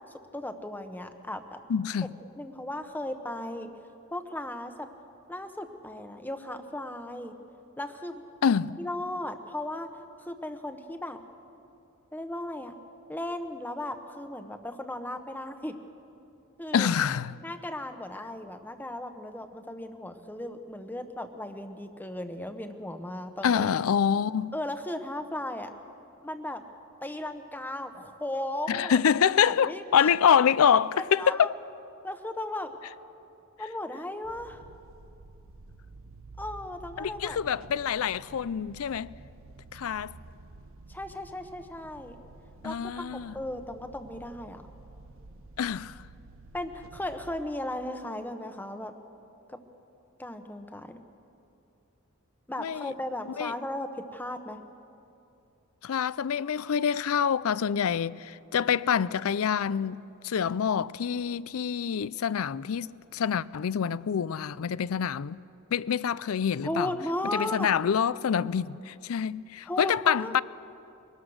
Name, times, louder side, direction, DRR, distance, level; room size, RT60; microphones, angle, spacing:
voice 1, 0.3-1.6 2.4-3.7 4.1-4.9 5.3-7.3 7.8-8.2 8.8-9.9 10.2-11.2 12.1-12.7 13.1-15.8 16.6-16.9 17.4-23.7 24.5-25.7 26.2-26.6 27.0-29.0 29.4-30.1 31.0-31.5 32.0-32.7 33.6-34.6 36.4-37.4 40.9-42.2 42.6-44.6 46.5-48.9 49.5-49.6 50.2-51.0 52.5-54.6 66.6-67.7 69.7-70.4, left 1 dB, 10° left, 1.0 m, -36 dB
voice 2, 1.7-2.1 8.4-8.8 16.7-17.4 23.4-24.5 28.7-31.5 37.0-39.1 39.7-40.1 42.6-43.3 45.6-45.9 52.6-52.9 53.4-53.5 55.8-65.4 65.7-66.9 67.3-70.4, left 7 dB, 70° left, 0.4 m, -26 dB
sound 1, 34.2-47.4, right 2 dB, 65° right, 0.8 m, -50 dB
23.0 x 18.5 x 6.4 m
head